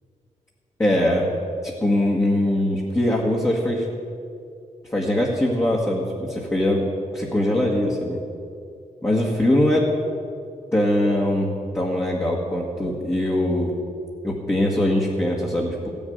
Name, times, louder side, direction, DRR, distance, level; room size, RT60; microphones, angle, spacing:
voice 1, 0.8-1.3 1.6-3.9 4.9-6.9 7.1-8.2 9.0-9.9 10.7-11.5 11.7-13.7 14.2-15.9, left 1 dB, 20° left, -3 dB, 1.8 m, -22 dB
15.5 x 7.2 x 9.5 m, 2.4 s
wide cardioid pair, 110°, 14 cm